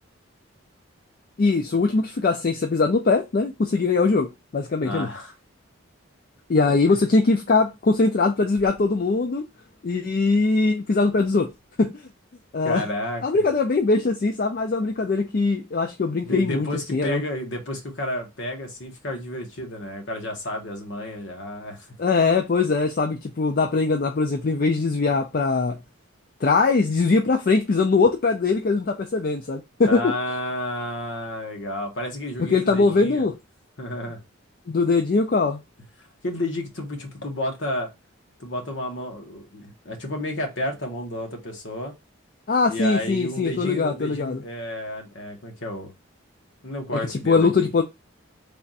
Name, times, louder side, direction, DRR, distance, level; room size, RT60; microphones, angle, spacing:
voice 1, 1.4-4.3 4.5-5.1 6.5-9.4 9.8-11.5 11.8-11.9 12.5-12.8 13.2-16.7 16.9-17.2 22.0-25.8 26.4-30.1 32.4-33.4 34.7-35.6 42.5-44.4 46.9-47.8, left 3 dB, 45° left, 0.4 m, -21 dB
voice 2, 4.8-5.3 6.7-7.0 12.6-13.2 16.2-21.9 29.8-33.3 33.8-34.2 36.2-37.9 38.4-41.9 42.7-45.9 46.6-47.7, left 1 dB, 60° left, 1.1 m, -31 dB
3.4 x 2.4 x 4.1 m
head